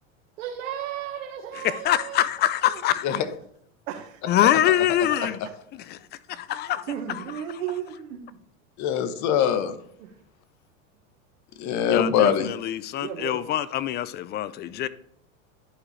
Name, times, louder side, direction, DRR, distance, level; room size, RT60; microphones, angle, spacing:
voice 1, 0.4-2.3 2.6-2.8 3.9-4.2 5.2-5.3 6.9-8.4 10.0-10.1 12.9-13.4, right 9 dB, 75° right, 1.4 m, -34 dB
voice 2, 1.6-3.2 4.3-5.4 5.9-6.0 6.3-7.2 11.9-14.9, left 12 dB, 25° left, 0.4 m, -24 dB
voice 3, 8.8-9.7 11.6-12.5, left 8 dB, 45° left, 1.0 m, -22 dB
11.0 x 4.7 x 3.2 m
supercardioid pair, 115°, 40 cm